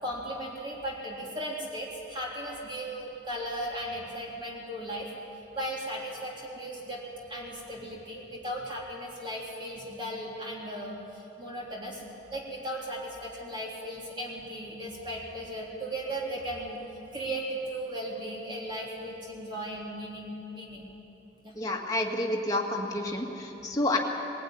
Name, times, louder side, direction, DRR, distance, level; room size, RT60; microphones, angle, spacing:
voice 1, 0.0-5.1 5.5-7.0 7.3-12.0 12.3-16.8 17.1-20.9 21.4-21.5, right 1 dB, 25° right, -3 dB, 3.4 m, -36 dB
voice 2, 21.6-24.0, left 1 dB, 20° left, -1 dB, 2.1 m, -29 dB
20.5 x 16.0 x 9.4 m, 2.9 s
head